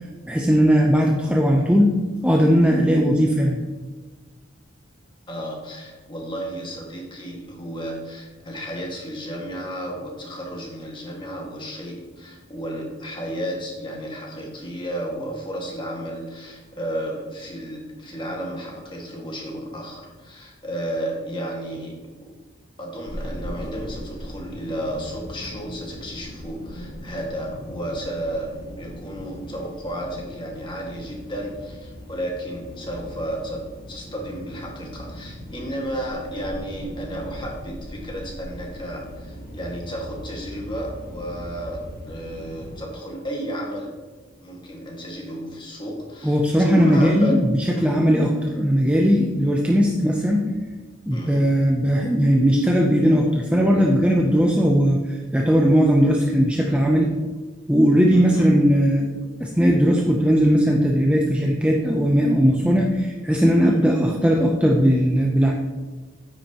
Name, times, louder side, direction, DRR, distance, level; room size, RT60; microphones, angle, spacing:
voice 1, 0.3-1.9 2.2-3.6 46.2-50.6 51.1-57.1 57.7-59.1 59.4-65.5, equal, 5° right, 0 dB, 0.6 m, -18 dB
voice 2, 5.3-22.4 22.8-28.5 28.8-33.6 33.9-43.9 44.4-47.4 47.7-47.9 51.1-51.4 58.1-58.5 63.6-63.9, equal, 25° left, -1 dB, 1.8 m, -32 dB
sound 1, 23.1-42.8, equal, 45° left, 1.8 m, -39 dB
9.8 x 8.6 x 2.9 m, 1.3 s
head